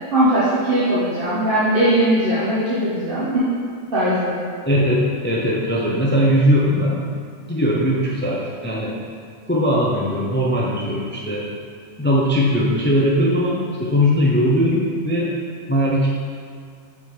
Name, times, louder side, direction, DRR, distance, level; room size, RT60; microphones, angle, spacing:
voice 1, 0.1-3.5 3.9-4.3, right 1 dB, 45° right, -10 dB, 1.2 m, -19 dB
voice 2, 4.6-7.0 7.5-8.9 9.5-11.5 12.0-15.3 15.7-16.1, equal, 10° left, -4 dB, 0.5 m, -19 dB
7.4 x 3.6 x 4.7 m, 2.1 s
omnidirectional pair, 1.3 m